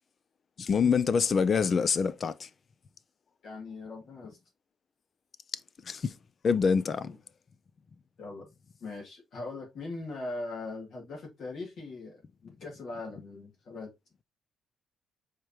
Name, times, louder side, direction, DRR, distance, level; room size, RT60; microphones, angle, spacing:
voice 1, 0.6-2.5 5.8-6.1 6.4-7.1, left 5 dB, 45° left, 0.4 m, -26 dB
voice 2, 3.4-4.4 7.0-7.1 8.2-8.5 8.8-13.9, left 3 dB, 60° left, 2.1 m, -40 dB
4.7 x 3.6 x 2.9 m
cardioid pair, 90°, 0 cm